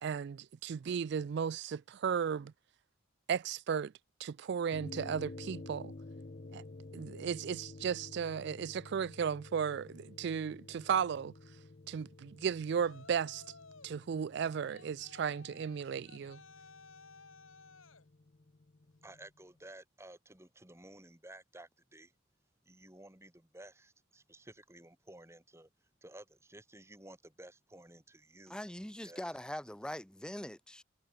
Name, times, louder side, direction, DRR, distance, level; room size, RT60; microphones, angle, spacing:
voice 1, 0.0-2.5 3.3-3.9 4.2-5.9 6.5-6.6 6.9-11.3 11.9-13.4 13.8-16.4, right 7 dB, 55° right, 0.3 m, -35 dB
sound 1, 4.7-19.3, left 2 dB, 40° left, 0.7 m, -51 dB
Yell, 12.6-14.0 14.7-18.1, left 4 dB, 80° left, 4.4 m, -56 dB
voice 2, 19.0-22.1 22.7-25.7 26.0-28.6 29.0-29.3, right 1 dB, 15° right, 2.0 m, -54 dB
voice 3, 28.5-30.8, left 1 dB, 5° left, 0.7 m, -42 dB
head